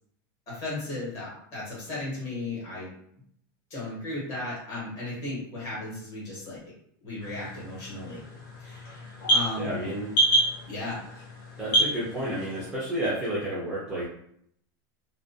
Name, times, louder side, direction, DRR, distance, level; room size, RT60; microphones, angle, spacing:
voice 1, 0.5-2.9 3.7-6.6 7.0-8.2 8.6-9.9 10.7-11.2, left 2 dB, 30° left, -7 dB, 1.2 m, -35 dB
sound 1, 7.2-12.7, right 1 dB, 70° left, 0.9 m, -28 dB
voice 2, 9.6-10.1 11.6-14.0, right 1 dB, 5° right, -9 dB, 0.4 m, -31 dB
2.4 x 2.1 x 2.5 m, 0.70 s
supercardioid pair, 175°, 12 cm